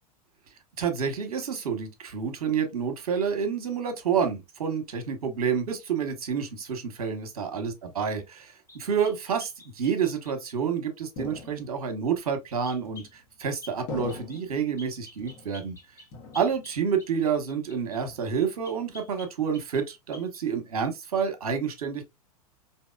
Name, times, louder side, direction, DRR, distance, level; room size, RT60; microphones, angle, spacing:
voice 1, 0.8-8.4 8.7-15.8 16.3-22.0, right 7 dB, 70° right, 1.1 m, -29 dB
sound 1, 8.7-10.6 12.6-13.1 13.6-13.8 14.1-14.5 14.8-18.0 18.6-19.9 20.1-20.4, left 2 dB, 15° left, 1.4 m, -49 dB
sound 2, 11.2-12.0 12.8-13.4 13.9-14.7 15.2-15.8 16.1-16.9 17.2-17.6 18.0-18.6, left 4 dB, 45° left, 1.4 m, -42 dB
4.6 x 2.8 x 2.3 m
figure-of-eight pair, 90°, 20 cm